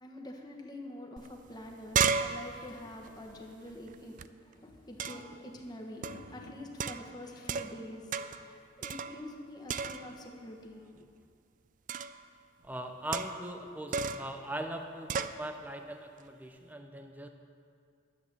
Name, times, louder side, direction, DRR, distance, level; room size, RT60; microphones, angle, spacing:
voice 1, 0.0-11.1, left 1 dB, 20° left, 1 dB, 1.2 m, -46 dB
sound 1, 1.2-1.3 1.5-4.3 5.0-5.4 6.0-6.3 6.8-7.8 8.1-8.5 8.8-9.4 9.7-10.3 11.9-12.2 13.1-13.5 13.9-14.3 15.1-15.4, right 6 dB, 45° right, 0.4 m, -34 dB
sound 2, 2.4-4.1 4.6-6.8 7.2-7.9 8.2-8.3 8.6-8.7 10.0-10.1, left 2 dB, 50° left, 0.8 m, -56 dB
voice 2, 12.6-17.3, right 1 dB, 10° right, 5 dB, 0.8 m, -40 dB
11.0 x 8.5 x 7.4 m, 2.3 s
head